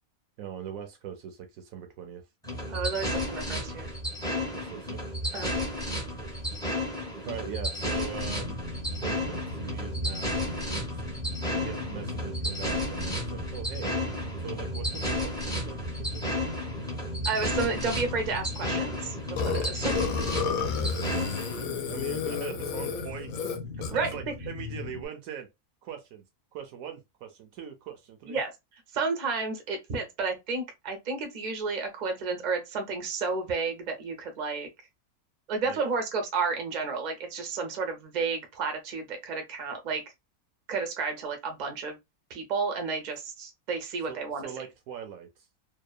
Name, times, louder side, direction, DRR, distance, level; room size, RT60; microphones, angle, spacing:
voice 1, 0.4-2.2 4.5-5.0 6.2-6.3 7.2-8.6 9.0-11.0 11.5-14.0 14.4-16.4 20.6-25.5 25.8-26.2 26.5-28.4 35.6-35.8 44.1-45.5, right 8 dB, 70° right, 0.9 m, -41 dB
sound 1, 2.4-21.6, left 1 dB, 5° left, 0.5 m, -33 dB
voice 2, 2.7-3.9 5.3-5.5 17.3-19.9 23.9-24.1 28.3-28.5 28.9-34.7 35.5-40.0 40.7-42.0 42.3-44.5, right 4 dB, 45° right, 0.5 m, -31 dB
sound 2, 8.1-25.1, left 2 dB, 40° left, 0.9 m, -39 dB
Burping eructation, 19.4-24.1, left 6 dB, 70° left, 0.9 m, -31 dB
2.8 x 2.1 x 2.2 m
omnidirectional pair, 1.6 m